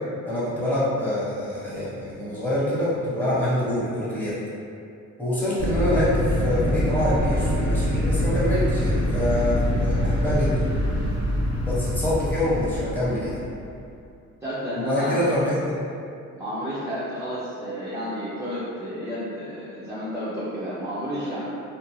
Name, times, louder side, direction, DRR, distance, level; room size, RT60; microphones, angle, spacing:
voice 1, 0.3-4.4 5.2-10.7 11.6-13.4 14.8-15.8, left 1 dB, 5° left, -11 dB, 1.0 m, -25 dB
sound 1, 5.6-13.8, left 1 dB, 65° left, 1.0 m, -24 dB
voice 2, 14.4-15.3 16.4-21.5, equal, 10° right, -11 dB, 0.6 m, -31 dB
2.5 x 2.1 x 3.0 m, 2.5 s
cardioid pair, 90°, 31 cm